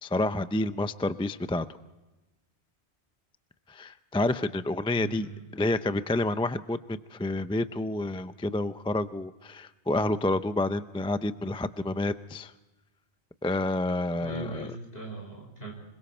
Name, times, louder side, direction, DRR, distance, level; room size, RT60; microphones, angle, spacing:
voice 1, 0.0-1.7 3.7-12.5 13.4-14.7, left 2 dB, 10° left, 11 dB, 0.4 m, -29 dB
voice 2, 4.9-5.4 14.1-15.7, right 2 dB, 60° left, 2 dB, 5.9 m, -39 dB
26.5 x 22.5 x 4.4 m, 1.1 s
omnidirectional pair, 1.1 m